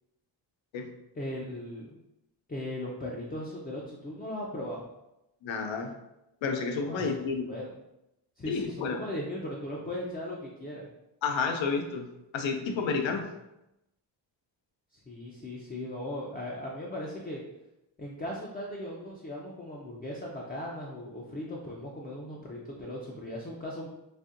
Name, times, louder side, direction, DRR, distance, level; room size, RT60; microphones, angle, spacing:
voice 1, 1.1-2.0 2.5-4.8 6.8-7.1 7.5-7.7 8.4-10.9 15.1-17.4 18.0-23.9, left 1 dB, 20° left, -3 dB, 0.4 m, -38 dB
voice 2, 5.4-5.9 6.4-7.5 8.5-9.0 11.2-12.1 12.3-13.3, left 5 dB, 85° left, 5 dB, 0.6 m, -30 dB
4.1 x 2.6 x 2.5 m, 0.90 s
wide cardioid pair, 150°, 45 cm